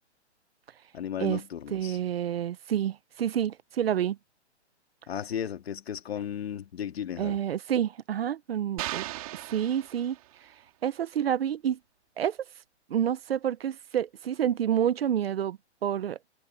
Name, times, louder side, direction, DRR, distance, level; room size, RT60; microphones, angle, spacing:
voice 1, 0.9-2.0 5.1-7.4, left 9 dB, 60° left, 2.0 m, -35 dB
voice 2, 1.7-4.2 7.2-9.0 9.5-10.2 10.8-11.8 12.2-12.4 12.9-16.2, right 9 dB, 55° right, 0.7 m, -28 dB
sound 1, 8.8-10.5, right 17 dB, 30° right, 3.7 m, -37 dB
hypercardioid pair, 170°, 35 cm